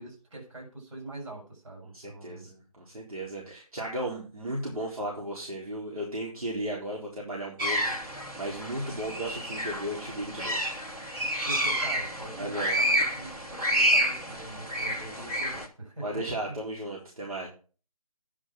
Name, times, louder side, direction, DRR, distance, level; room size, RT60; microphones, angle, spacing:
voice 1, 0.0-2.5 11.4-16.6, right 2 dB, 55° right, -1 dB, 7.0 m, -43 dB
voice 2, 1.9-10.6 11.1-11.4 12.4-12.8 16.0-17.5, right 1 dB, 75° right, -3 dB, 3.9 m, -35 dB
sound 1, 7.6-15.7, equal, 10° right, 1.0 m, -29 dB
9.8 x 6.3 x 6.3 m, 0.39 s
figure-of-eight pair, 150°, 19 cm